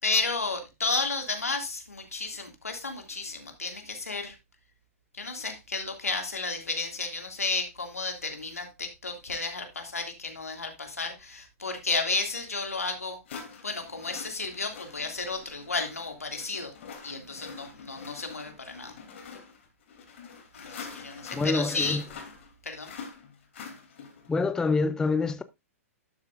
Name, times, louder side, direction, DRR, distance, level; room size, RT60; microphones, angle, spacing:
voice 1, 0.0-4.4 5.2-13.2 13.6-16.7 17.0-19.0 20.5-22.0 22.6-22.9, left 3 dB, 80° left, 2.4 m, -32 dB
sound 1, 12.4-12.5 13.3-24.3, left 6 dB, 55° left, 3.0 m, -45 dB
voice 2, 21.3-22.0 24.3-25.4, left 3 dB, 10° left, 0.4 m, -26 dB
12.0 x 7.3 x 2.5 m
figure-of-eight pair, 110°, 8 cm